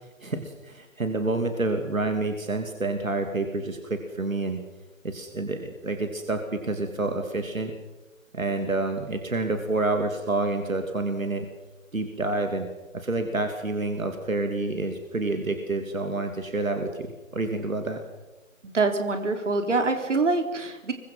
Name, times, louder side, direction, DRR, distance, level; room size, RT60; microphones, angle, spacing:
voice 1, 0.2-4.6 5.0-7.7 8.3-11.5 11.9-12.7 12.9-18.0, right 2 dB, 80° right, 5 dB, 3.0 m, -28 dB
voice 2, 18.6-20.9, right 3 dB, 60° right, 6 dB, 3.9 m, -25 dB
27.0 x 24.0 x 5.7 m, 1.1 s
figure-of-eight pair, 145°, 40 cm